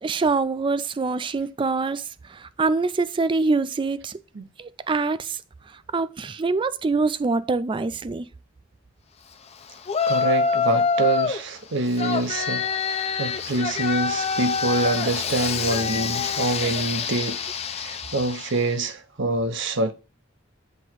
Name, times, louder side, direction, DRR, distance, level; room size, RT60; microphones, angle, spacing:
voice 1, 0.0-2.0 2.3-4.2 4.6-5.4 5.9-8.3, right 3 dB, 25° right, 0.4 m, -24 dB
Yell, 9.9-11.4 12.0-18.7, left 5 dB, 30° left, 0.5 m, -26 dB
voice 2, 10.1-17.4 17.7-19.9, right 2 dB, 65° right, 0.8 m, -26 dB
7.9 x 3.0 x 4.5 m
head